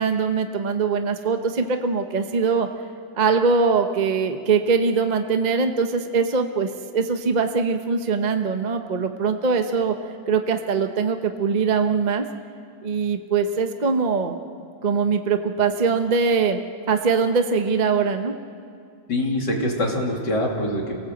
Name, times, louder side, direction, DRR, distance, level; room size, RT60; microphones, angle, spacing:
voice 1, 0.0-2.7 3.1-9.9 10.3-12.3 12.8-14.4 14.8-16.6 16.9-18.3, right 5 dB, 40° right, 6 dB, 0.6 m, -22 dB
voice 2, 19.1-20.9, left 1 dB, 55° left, -1 dB, 3.4 m, -24 dB
27.5 x 18.0 x 8.0 m, 2.3 s
omnidirectional pair, 2.2 m